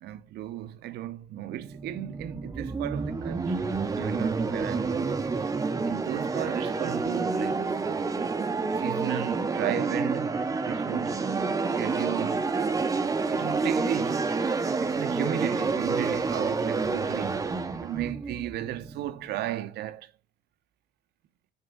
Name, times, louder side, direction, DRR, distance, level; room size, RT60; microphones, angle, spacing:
voice 1, 0.0-5.2 5.8-8.2 8.5-10.3 10.6-11.2 11.7-12.7 13.3-14.3 14.8-20.1, right 13 dB, 75° right, 0.8 m, -35 dB
sound 1, 1.5-19.4, right 4 dB, 20° right, 0.7 m, -29 dB
9.7 x 3.6 x 5.4 m
cardioid pair, 110°, 17 cm